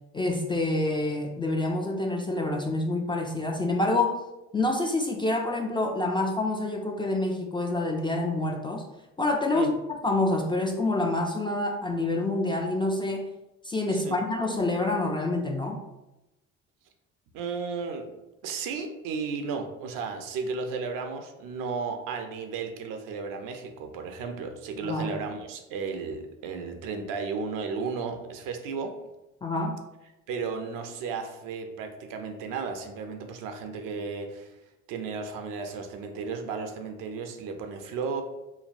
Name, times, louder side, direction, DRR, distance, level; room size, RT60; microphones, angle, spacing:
voice 1, 0.1-4.2 4.5-8.9 9.2-9.7 10.0-13.3 13.6-15.8 24.8-25.1 29.4-29.8, left 2 dB, 15° left, 2 dB, 0.3 m, -27 dB
voice 2, 17.3-18.1 18.4-29.0 30.3-34.6 34.9-38.2, right 5 dB, 70° right, 6 dB, 0.5 m, -34 dB
3.2 x 2.2 x 2.5 m, 0.96 s
hypercardioid pair, 65°, 34 cm